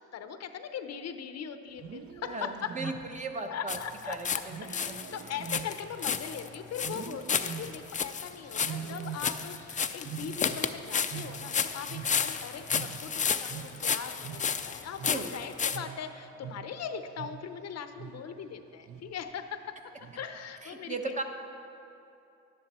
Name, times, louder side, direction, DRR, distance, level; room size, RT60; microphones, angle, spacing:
voice 1, 0.0-2.7 3.5-19.8 20.1-21.2, left 7 dB, 60° left, 9 dB, 0.7 m, -40 dB
Wild animals, 1.7-3.4 4.5-6.4 6.8-8.0 8.6-9.7 9.9-12.4 12.7-17.6 18.0-18.4 18.9-19.3 20.0-20.5, right 8 dB, 50° right, 0.6 m, -43 dB
voice 2, 2.2-3.8 4.1-4.3 4.6-5.0 15.0-15.3 20.6-21.2, right 3 dB, 25° right, 4 dB, 0.9 m, -37 dB
sound 1, 3.7-4.4 4.7-15.8, left 6 dB, 25° left, 0.4 m, -32 dB
11.0 x 10.0 x 4.2 m, 2.8 s
cardioid pair, 90°, 30 cm